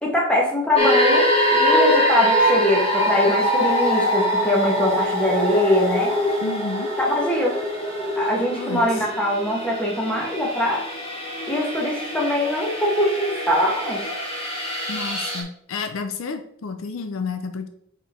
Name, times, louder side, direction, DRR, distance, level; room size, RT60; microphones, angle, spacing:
voice 1, 0.0-6.1 7.1-7.5 8.2-10.8 11.5-14.0, left 1 dB, 5° left, -2 dB, 1.3 m, -22 dB
sound 1, 0.8-15.4, equal, 25° left, 1.3 m, -23 dB
voice 2, 6.4-6.9 8.6-8.8 14.9-17.7, left 4 dB, 65° left, 8 dB, 0.5 m, -30 dB
5.1 x 4.9 x 4.3 m, 0.67 s
head